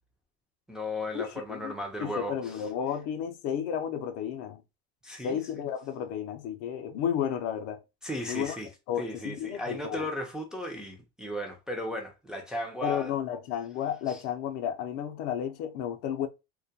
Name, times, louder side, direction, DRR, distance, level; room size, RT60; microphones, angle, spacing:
voice 1, 0.7-2.6 5.0-5.6 8.0-8.7 9.0-13.1 14.1-14.2, left 1 dB, ahead, 0.4 m, -36 dB
voice 2, 2.0-4.6 5.2-7.8 8.3-8.6 8.9-10.1 12.8-16.3, left 9 dB, 50° left, 0.5 m, -32 dB
2.2 x 2.1 x 2.7 m
supercardioid pair, 115°, 31 cm